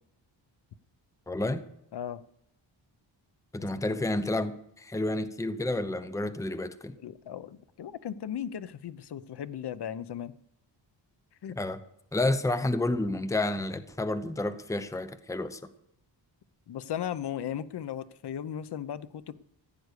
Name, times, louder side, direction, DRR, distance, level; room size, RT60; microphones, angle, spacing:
voice 1, 1.3-1.6 3.5-6.9 11.6-11.8 12.1-15.6, left 2 dB, 5° left, 11 dB, 0.8 m, -30 dB
voice 2, 1.9-2.2 3.9-4.0 7.0-10.3 11.4-11.6 16.7-19.3, left 9 dB, 60° left, 15 dB, 0.8 m, -36 dB
15.5 x 9.5 x 6.7 m, 0.77 s
wide cardioid pair, 125°, 46 cm